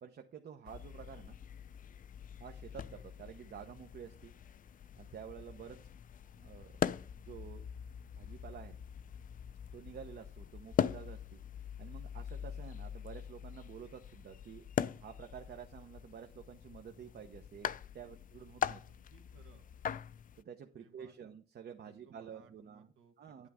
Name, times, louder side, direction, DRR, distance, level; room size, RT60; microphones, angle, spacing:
voice 1, 0.0-1.4 2.4-4.3 5.0-5.8 6.3-6.8 7.1-7.6 8.1-8.8 9.7-11.4 11.8-14.7 14.9-17.7 17.9-18.8 20.4-22.9 23.2-23.5, right 8 dB, 55° right, 5 dB, 1.0 m, -50 dB
sound 1, 0.7-20.4, left 8 dB, 45° left, 0.5 m, -42 dB
voice 2, 18.9-19.7 20.8-21.3 21.8-23.5, right 6 dB, 85° right, 4 dB, 1.7 m, -64 dB
9.7 x 8.6 x 3.6 m, 0.38 s
cardioid pair, 90°, 20 cm